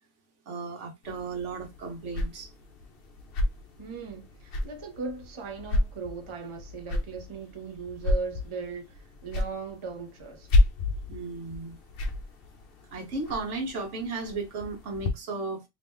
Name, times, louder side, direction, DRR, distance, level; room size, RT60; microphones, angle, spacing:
voice 1, 0.5-2.5 11.1-11.8 12.9-15.6, right 3 dB, 70° right, 1.2 m, -35 dB
sound 1, 1.0-15.1, left 2 dB, 55° left, 0.8 m, -31 dB
voice 2, 3.8-10.5, right 4 dB, 30° right, 0.7 m, -38 dB
3.0 x 2.9 x 3.5 m
omnidirectional pair, 1.3 m